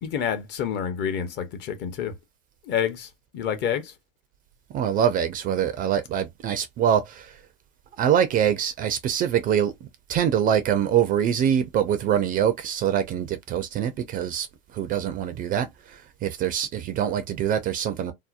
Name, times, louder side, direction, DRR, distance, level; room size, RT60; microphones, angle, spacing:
voice 1, 0.0-2.1 2.7-3.9, left 8 dB, 40° left, 0.7 m, -28 dB
voice 2, 4.7-7.4 8.0-14.5 14.7-18.1, right 9 dB, 30° right, 0.4 m, -24 dB
2.7 x 2.0 x 2.4 m
hypercardioid pair, 105°, 29 cm